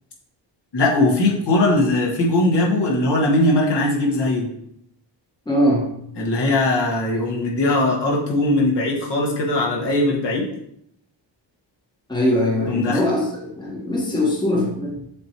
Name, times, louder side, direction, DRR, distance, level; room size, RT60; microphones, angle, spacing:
voice 1, 0.7-4.5 6.1-10.4 12.7-13.0, left 2 dB, 60° left, -3 dB, 1.6 m, -20 dB
voice 2, 5.5-5.9 12.1-13.2 13.6-15.0, left 1 dB, 10° left, -3 dB, 1.1 m, -21 dB
7.2 x 3.0 x 4.4 m, 0.73 s
wide cardioid pair, 175°, 46 cm